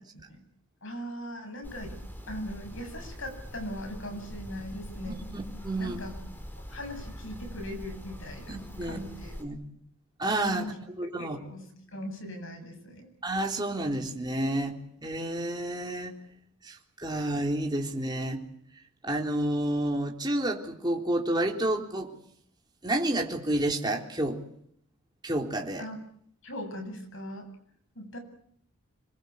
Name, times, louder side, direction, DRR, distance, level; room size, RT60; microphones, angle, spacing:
voice 1, 0.8-2.0 2.3-5.3 5.8-6.1 6.5-9.3 10.5-10.8 11.2-13.1 25.8-26.0 26.4-27.5 28.0-28.2, equal, 60° left, 6 dB, 8.0 m, -40 dB
sound 1, 1.6-9.4, equal, 10° left, 4.4 m, -43 dB
voice 2, 5.6-6.0 8.5-9.0 9.4-9.6 10.2-10.7 11.0-11.4 13.2-14.7 15.0-16.1 16.6-18.4 19.0-22.1 22.8-24.4 25.2-25.9, right 1 dB, 20° right, 1 dB, 3.7 m, -29 dB
26.5 x 23.5 x 8.4 m, 0.68 s
head